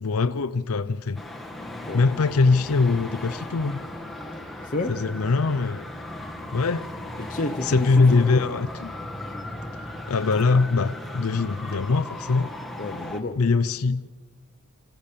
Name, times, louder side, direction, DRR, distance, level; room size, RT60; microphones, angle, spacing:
voice 1, 0.0-1.2 1.9-3.8 4.9-5.9 6.5-6.9 7.6-8.9 10.1-12.5 13.4-14.1, left 4 dB, 70° left, 0.6 m, -22 dB
Traffic noise roadway noise, 1.1-13.2, left 1 dB, ahead, 1.5 m, -37 dB
voice 2, 4.6-5.0 7.2-8.4 12.8-13.4, left 2 dB, 40° left, 0.9 m, -30 dB
26.5 x 15.0 x 6.8 m
head